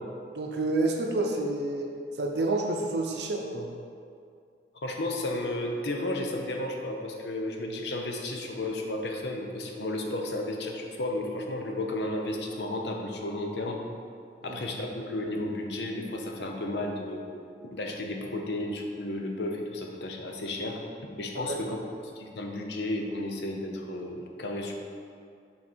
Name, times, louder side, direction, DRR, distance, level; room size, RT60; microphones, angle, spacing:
voice 1, 0.3-1.9 2.2-3.7 14.4-14.6 21.4-21.6, right 2 dB, 75° right, 1 dB, 0.6 m, -29 dB
voice 2, 4.8-13.8 14.4-17.3 17.6-21.8 22.2-24.8, left 1 dB, 80° left, 1 dB, 0.7 m, -33 dB
6.2 x 3.9 x 4.4 m, 2.3 s
head